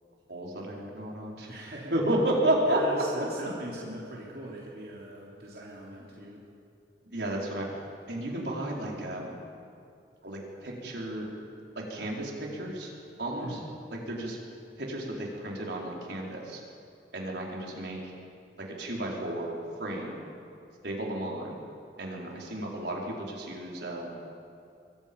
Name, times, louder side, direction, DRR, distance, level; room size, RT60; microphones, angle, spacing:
voice 1, 0.3-1.5 1.9-2.8 7.1-7.7 8.1-9.3 10.2-11.3 11.7-12.9 13.2-13.6 13.9-14.4 14.8-16.6 17.1-18.1 18.6-20.2 20.8-21.5 22.0-24.1, right 1 dB, 80° right, -2 dB, 4.6 m, -32 dB
voice 2, 1.5-2.0 2.6-6.4 13.4-13.6, right 1 dB, 60° right, -5 dB, 3.3 m, -40 dB
26.5 x 23.0 x 5.5 m, 2.5 s
head